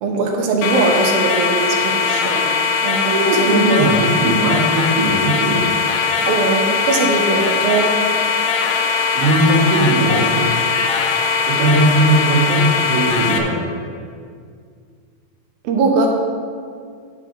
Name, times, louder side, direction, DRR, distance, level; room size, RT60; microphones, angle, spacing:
voice 1, 0.0-2.5 2.8-3.9 6.2-8.1 15.6-16.2, right 3 dB, 80° right, 1 dB, 2.8 m, -20 dB
sound 1, 0.6-13.4, left 5 dB, 75° left, 2.0 m, -20 dB
voice 2, 3.1-5.7 9.2-10.5 11.5-13.6, right 1 dB, 65° right, -4 dB, 3.4 m, -18 dB
12.0 x 7.4 x 3.8 m, 2.2 s
omnidirectional pair, 4.2 m